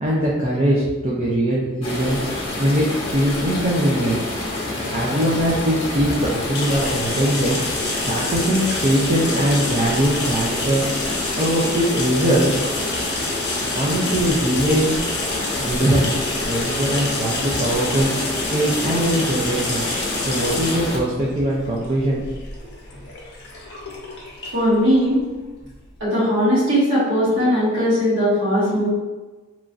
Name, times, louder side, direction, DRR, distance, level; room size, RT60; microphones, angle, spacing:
voice 1, 0.0-2.2 2.6-2.9 3.1-4.2 4.9-7.6 8.0-10.9 11.4-12.7 13.7-15.0 15.6-16.1 16.4-18.1 18.5-19.9 20.3-22.2 22.6-22.7, right 1 dB, 30° right, -5 dB, 0.4 m, -21 dB
sound 1, 1.8-21.0, left 2 dB, 25° left, 0.8 m, -28 dB
sound 2, 6.5-26.0, left 2 dB, 55° left, 0.6 m, -29 dB
voice 2, 24.5-25.2 26.0-28.9, equal, 60° right, -9 dB, 1.5 m, -19 dB
3.0 x 2.5 x 2.3 m, 1.2 s
head